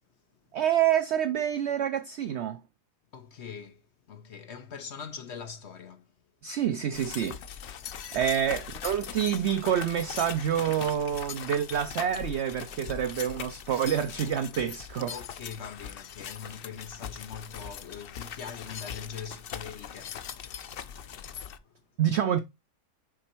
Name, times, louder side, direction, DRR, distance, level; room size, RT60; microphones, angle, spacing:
voice 1, 0.5-2.6 6.4-7.4 8.1-15.1 22.0-22.4, right 9 dB, 85° right, 0.6 m, -27 dB
voice 2, 3.1-6.1 6.5-6.6 8.1-8.2 15.1-20.6 20.9-21.1 21.6-21.9, left 7 dB, 55° left, 0.9 m, -42 dB
sound 1, 6.9-21.6, left 8 dB, 90° left, 0.5 m, -41 dB
6.5 x 4.2 x 4.4 m
omnidirectional pair, 1.7 m